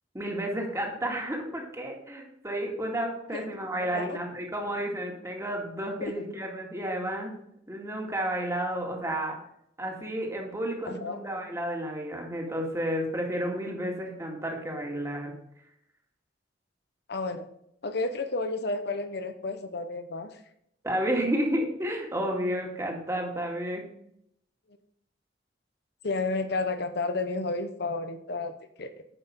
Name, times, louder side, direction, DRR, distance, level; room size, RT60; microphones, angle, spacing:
voice 1, 0.1-7.3 7.7-9.4 9.8-15.3 20.8-23.8, right 1 dB, 15° right, 0 dB, 2.1 m, -31 dB
voice 2, 3.8-4.2 6.0-6.1 10.9-11.2 17.1-17.4 17.8-20.4 26.0-28.5 28.8-28.9, left 3 dB, 65° left, 8 dB, 0.9 m, -31 dB
10.0 x 5.9 x 5.3 m, 0.73 s
head